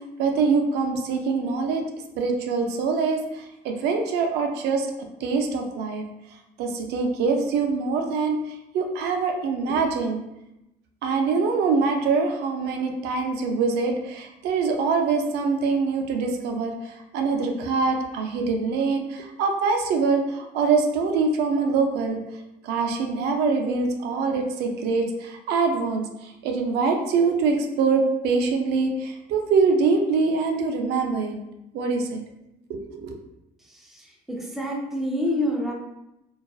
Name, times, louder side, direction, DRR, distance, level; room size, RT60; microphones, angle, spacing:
voice 1, 0.0-1.9 2.2-4.9 5.2-6.0 6.6-10.2 11.0-22.2 22.6-31.4 31.7-32.2 32.7-33.2, right 4 dB, 80° right, 4 dB, 0.4 m, -24 dB
voice 2, 33.7-35.7, left 1 dB, ahead, -1 dB, 0.4 m, -28 dB
2.4 x 2.3 x 2.3 m, 0.88 s
cardioid pair, 110°, 17 cm